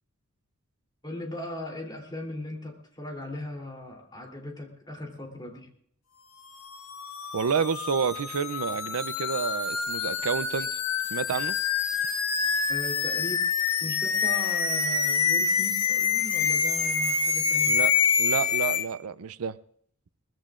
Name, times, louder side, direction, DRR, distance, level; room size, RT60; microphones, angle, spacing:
voice 1, 1.0-5.7 12.7-13.5 13.8-17.8, left 1 dB, 20° left, 3.1 m, -38 dB
sound 1, 6.6-18.8, left 6 dB, 70° left, 1.5 m, -26 dB
voice 2, 7.3-11.6 17.7-19.6, right 6 dB, 85° right, 0.5 m, -30 dB
22.0 x 20.0 x 2.5 m
head